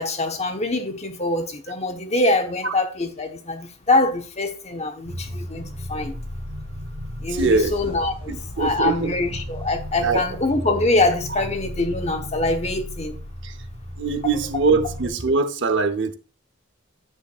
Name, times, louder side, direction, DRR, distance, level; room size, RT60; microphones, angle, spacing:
voice 1, 0.0-6.2 7.2-13.2, left 2 dB, 30° left, 1.1 m, -24 dB
sound 1, 5.0-15.1, equal, 75° right, 2.6 m, -35 dB
voice 2, 7.3-7.7 8.3-9.1 10.0-10.2 13.4-13.5 14.0-16.1, right 3 dB, 60° right, 0.8 m, -22 dB
sound 2, 7.4-11.5, right 1 dB, 25° right, 1.0 m, -40 dB
9.7 x 7.4 x 2.4 m
head